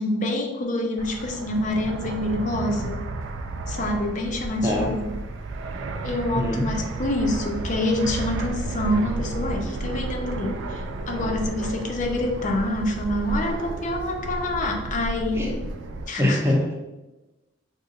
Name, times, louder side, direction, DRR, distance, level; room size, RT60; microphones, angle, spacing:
voice 1, 0.0-3.0 3.7-5.1 6.0-15.6 16.1-16.4, left 1 dB, 40° left, 2 dB, 0.4 m, -26 dB
Fixed-wing aircraft airplane, 1.0-16.1, right 2 dB, 70° right, 0.3 m, -32 dB
voice 2, 16.2-16.7, left 1 dB, 15° right, -1 dB, 0.5 m, -23 dB
2.7 x 2.4 x 3.7 m, 1.1 s
head